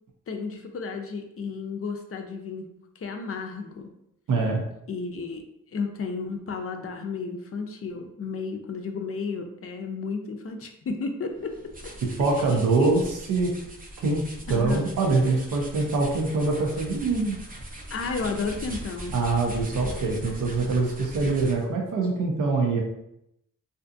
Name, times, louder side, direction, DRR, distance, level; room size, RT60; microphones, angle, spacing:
voice 1, 0.3-2.7 3.0-3.9 4.9-5.4 5.7-11.6 11.8-11.9 12.8-13.0 14.5-14.9 17.9-19.1, left 4 dB, 45° left, 4 dB, 0.5 m, -32 dB
voice 2, 4.3-4.6 12.0-13.0 13.3-13.6 14.0-17.4 19.1-22.8, right 3 dB, 75° right, 1 dB, 0.6 m, -24 dB
sound 1, 11.3-21.8, right 1 dB, 25° right, 0.5 m, -40 dB
2.6 x 2.3 x 2.5 m, 0.80 s
cardioid pair, 65°, 32 cm